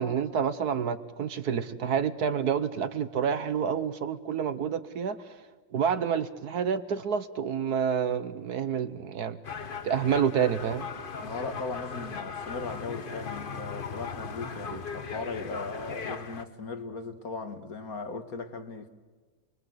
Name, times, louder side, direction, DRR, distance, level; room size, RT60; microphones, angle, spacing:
voice 1, 0.0-9.4 9.8-10.9 14.7-14.8, right 7 dB, 60° right, 1.3 m, -29 dB
sound 1, 9.4-16.4, left 5 dB, 35° left, 0.9 m, -38 dB
voice 2, 11.2-18.9, left 3 dB, 50° left, 2.0 m, -37 dB
28.5 x 22.0 x 8.0 m
omnidirectional pair, 2.0 m